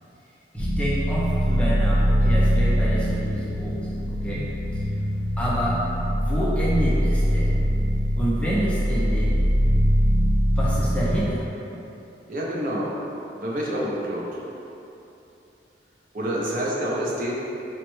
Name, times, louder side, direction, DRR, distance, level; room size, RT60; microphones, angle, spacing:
voice 1, 0.5-4.5 4.7-4.8 5.4-5.9 6.1-7.6 8.2-9.4 10.6-11.5, equal, 5° left, -7 dB, 0.4 m, -28 dB
sound 1, 0.6-11.2, equal, 85° right, 0.7 m, -22 dB
voice 2, 12.3-12.9 13.3-14.4 16.1-17.3, equal, 50° right, -4 dB, 0.5 m, -27 dB
4.2 x 2.1 x 3.1 m, 2.9 s
head